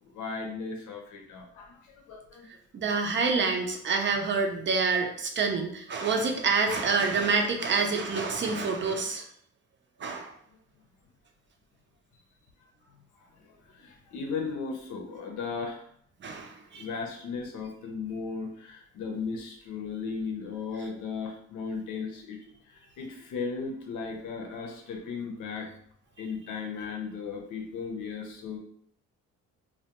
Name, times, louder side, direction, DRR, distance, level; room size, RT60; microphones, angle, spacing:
voice 1, 0.0-2.4 13.2-15.8 16.7-22.4 22.7-25.7 26.2-28.6, left 5 dB, 85° left, 2 dB, 0.6 m, -36 dB
voice 2, 2.7-9.2 10.0-10.3 16.2-16.9, right 4 dB, 40° right, 4 dB, 0.5 m, -27 dB
2.3 x 2.1 x 2.8 m, 0.64 s
cardioid pair, 90°, 30 cm